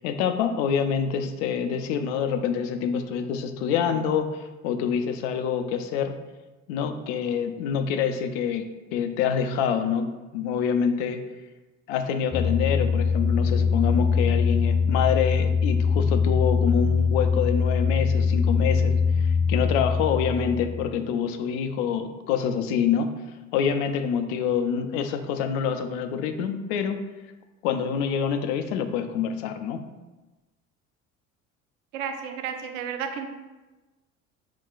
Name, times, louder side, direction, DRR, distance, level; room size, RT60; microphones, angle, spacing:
voice 1, 0.0-6.2 6.7-11.2 11.9-23.1 23.5-27.0 27.6-29.8, left 7 dB, 70° left, 7 dB, 0.5 m, -26 dB
sound 1, 12.3-20.9, left 5 dB, 10° right, 0.7 m, -23 dB
voice 2, 31.9-33.3, right 7 dB, 85° right, 6 dB, 0.5 m, -32 dB
5.6 x 2.2 x 2.4 m, 1.1 s
hypercardioid pair, 60°, 38 cm